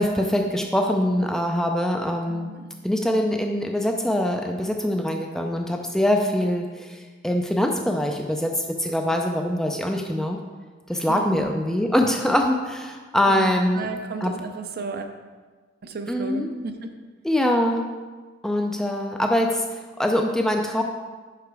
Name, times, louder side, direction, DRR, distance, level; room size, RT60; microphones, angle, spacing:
voice 1, 0.0-2.5 2.8-10.4 10.9-13.9 14.2-14.3 16.1-16.5 17.2-17.9 18.4-20.8, left 1 dB, ahead, 2 dB, 0.3 m, -23 dB
voice 2, 2.3-2.7 10.9-11.4 13.3-15.1 15.8-16.8, right 4 dB, 50° right, 6 dB, 0.5 m, -34 dB
5.5 x 4.9 x 4.7 m, 1.4 s
head